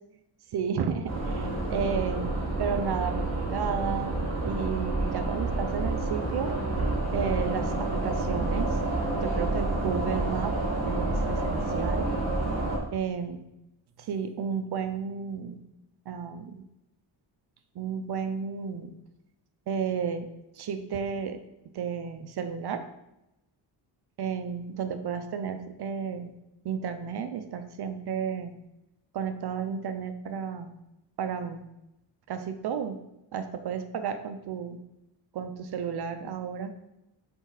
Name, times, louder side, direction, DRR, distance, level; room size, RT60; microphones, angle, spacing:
voice 1, 0.5-6.5 7.1-8.8 9.2-10.6 10.8-12.1 12.9-13.4 14.0-15.6 16.1-16.7 17.7-18.9 19.7-20.3 20.6-21.4 21.7-22.8 24.2-26.3 26.6-28.6 29.1-30.7 31.2-31.7 32.3-33.0 33.3-34.8 35.3-36.7, right 7 dB, 60° right, 8 dB, 0.8 m, -32 dB
sound 1, 1.1-12.8, right 2 dB, 35° right, 2.3 m, -29 dB
6.9 x 4.6 x 3.9 m, 0.88 s
cardioid pair, 135°, 45 cm